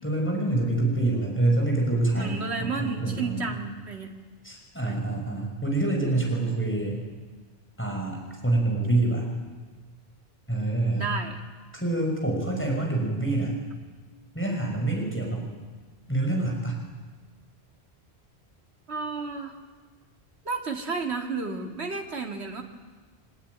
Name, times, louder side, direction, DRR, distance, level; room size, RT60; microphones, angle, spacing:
voice 1, 0.0-3.5 4.4-7.0 7.8-9.3 10.5-11.0 11.7-13.5 14.3-15.4 16.1-16.8, right 2 dB, 10° left, 0 dB, 6.1 m, -26 dB
voice 2, 2.1-4.2 4.8-5.0 10.9-11.4 18.9-19.6 20.4-22.6, right 4 dB, 75° right, 2 dB, 2.5 m, -32 dB
24.5 x 21.0 x 9.6 m, 1.4 s
omnidirectional pair, 1.1 m